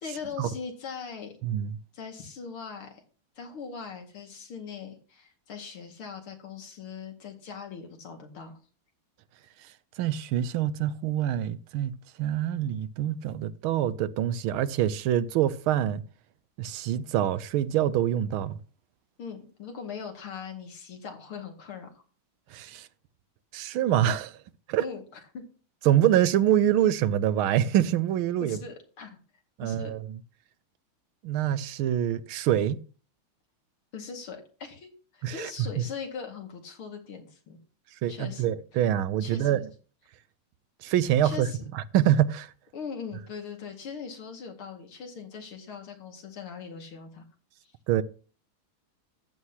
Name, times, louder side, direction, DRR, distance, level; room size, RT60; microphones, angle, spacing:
voice 1, 0.0-1.3 1.9-3.0 3.4-8.5 19.2-21.9 24.8-25.0 25.3-25.4 28.4-29.2 29.6-29.9 33.9-37.6 38.1-38.5 39.2-39.6 41.2-41.7 42.7-47.2 47.6-47.7, left 6 dB, 85° left, 3.0 m, -40 dB
voice 2, 1.4-1.8 10.0-11.9 12.2-16.0 16.6-18.6 22.5-22.9 23.5-24.4 24.7-24.8 25.8-28.6 29.6-30.2 31.2-32.8 35.2-35.5 38.0-39.7 40.8-41.5 41.7-42.5 47.9-48.0, right 11 dB, 85° right, 1.5 m, -25 dB
14.0 x 9.7 x 2.9 m
omnidirectional pair, 2.3 m